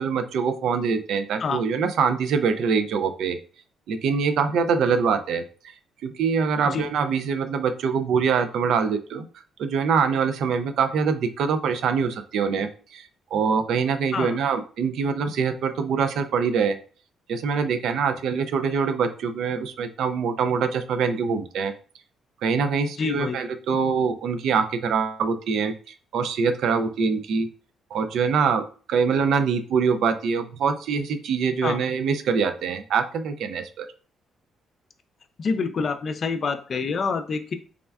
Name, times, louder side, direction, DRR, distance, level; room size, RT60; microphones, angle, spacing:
voice 1, 0.0-3.4 3.9-5.4 6.0-9.3 9.6-16.8 17.3-21.7 22.4-25.7 26.1-27.5 27.9-33.9, right 6 dB, 75° right, 9 dB, 0.3 m, -24 dB
voice 2, 23.0-23.4 31.6-31.8 35.4-37.5, left 4 dB, 50° left, 8 dB, 0.4 m, -27 dB
3.5 x 2.1 x 2.3 m, 0.39 s
cardioid pair, 90°, 0 cm